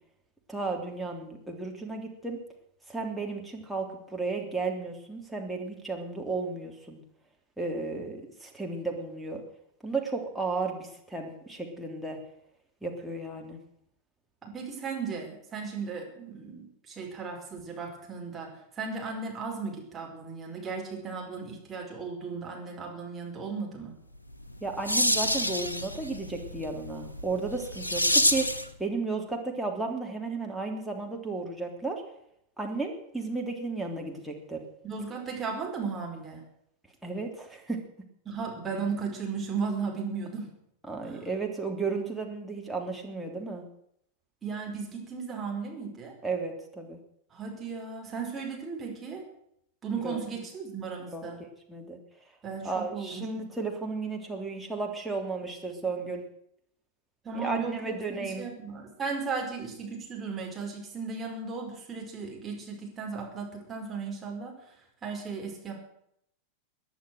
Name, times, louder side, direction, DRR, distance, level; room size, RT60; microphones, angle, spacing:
voice 1, 0.5-2.4 2.9-7.0 7.6-9.4 9.8-12.2 12.8-13.6 24.6-32.0 32.6-34.6 37.0-37.8 40.9-43.6 46.2-47.0 50.0-50.2 51.1-52.0 52.6-56.2 57.3-58.5, right 3 dB, ahead, 0 dB, 3.3 m, -34 dB
voice 2, 14.4-23.9 34.8-36.4 38.3-40.5 41.0-41.3 44.4-46.2 47.3-49.2 49.8-51.4 52.4-53.5 57.2-64.7 65.0-65.7, right 5 dB, 20° right, 0 dB, 5.3 m, -36 dB
sound 1, 24.3-28.7, left 1 dB, 85° left, 1.0 m, -28 dB
18.5 x 10.5 x 6.6 m, 0.73 s
figure-of-eight pair, 90°, 0 cm